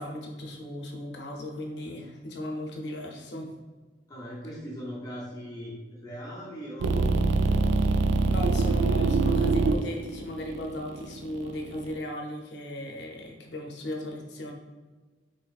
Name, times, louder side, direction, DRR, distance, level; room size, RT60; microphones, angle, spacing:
voice 1, 0.0-3.5 8.3-14.5, left 1 dB, 70° left, 0 dB, 0.6 m, -37 dB
voice 2, 4.1-8.0, equal, 20° left, -6 dB, 0.7 m, -40 dB
sound 1, 6.8-11.9, right 3 dB, 85° right, 0.3 m, -24 dB
4.0 x 3.3 x 2.4 m, 1.3 s
head